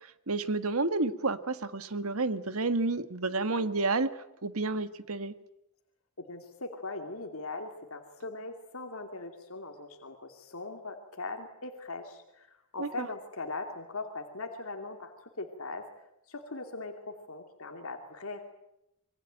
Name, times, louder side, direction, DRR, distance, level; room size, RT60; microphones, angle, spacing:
voice 1, 0.3-4.1 4.4-5.3 12.8-13.1, right 3 dB, 80° right, 12 dB, 1.6 m, -30 dB
voice 2, 6.3-15.9 16.3-18.4, left 3 dB, 75° left, 4 dB, 2.6 m, -40 dB
26.5 x 23.0 x 8.9 m, 0.85 s
head